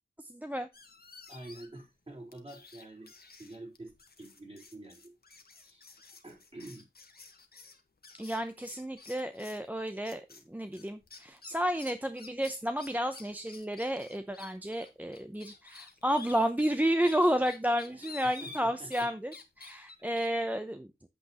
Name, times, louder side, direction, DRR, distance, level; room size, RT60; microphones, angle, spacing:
voice 1, 0.3-0.7 8.1-21.1, equal, 10° right, 0.7 m, -31 dB
sound 1, 0.7-1.8 2.3-9.7 10.0-10.4 10.7-19.1 19.3-20.3, left 4 dB, 55° left, 1.5 m, -51 dB
voice 2, 1.3-3.1 3.4-5.1 5.6-5.9 6.2-6.9 17.9-18.1 18.4-19.1, right 1 dB, 30° right, 4.2 m, -47 dB
8.4 x 7.9 x 3.0 m
wide cardioid pair, 65°, 19 cm